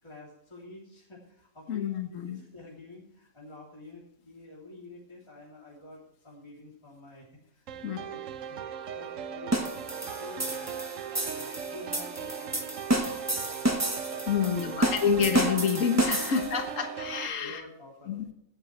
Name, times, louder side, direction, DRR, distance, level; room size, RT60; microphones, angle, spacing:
voice 1, 0.0-10.9 11.2-15.3 16.4-16.6 17.3-18.3, left 2 dB, 20° left, -5 dB, 3.3 m, -49 dB
voice 2, 1.7-2.4 7.8-8.0 14.3-17.6 18.1-18.2, left 7 dB, 70° left, 6 dB, 1.6 m, -28 dB
sound 1, 7.7-17.3, right 8 dB, 70° right, 1.1 m, -38 dB
sound 2, 9.5-16.6, right 1 dB, 15° right, 1.1 m, -30 dB
16.5 x 10.5 x 3.3 m, 0.77 s
omnidirectional pair, 1.4 m